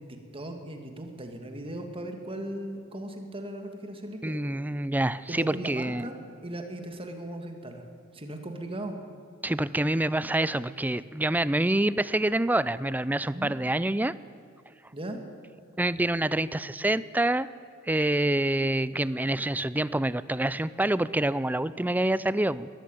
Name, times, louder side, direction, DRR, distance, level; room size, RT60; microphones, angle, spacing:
voice 1, 0.0-4.4 5.3-7.8 8.1-9.0 13.3-13.5 14.9-15.2, right 1 dB, 25° right, 5 dB, 2.3 m, -38 dB
voice 2, 4.2-6.0 9.4-14.1 15.8-17.5 17.9-22.7, right 1 dB, 10° right, 17 dB, 0.5 m, -26 dB
20.5 x 14.0 x 9.1 m, 2.4 s
head